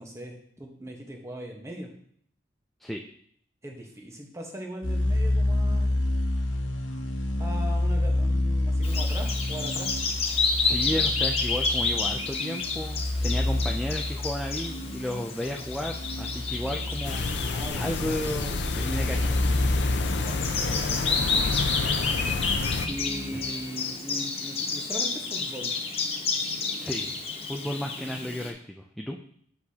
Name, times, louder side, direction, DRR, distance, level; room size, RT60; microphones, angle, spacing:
voice 1, 0.0-1.9 3.6-6.0 7.3-9.9 17.5-17.9 20.1-20.4 20.7-21.4 22.8-25.7, equal, 15° right, 1 dB, 1.1 m, -39 dB
sound 1, 4.8-23.9, left 1 dB, 90° left, 1.1 m, -29 dB
Bird vocalization bird call bird song, 8.8-28.5, left 4 dB, 30° left, 0.9 m, -30 dB
voice 2, 10.6-17.2 17.7-19.5 22.1-22.5 23.3-23.4 26.8-27.2 27.5-29.2, equal, ahead, 0 dB, 0.3 m, -33 dB
sound 2, 17.0-22.9, left 4 dB, 65° left, 0.6 m, -30 dB
8.2 x 6.5 x 2.8 m, 0.64 s
head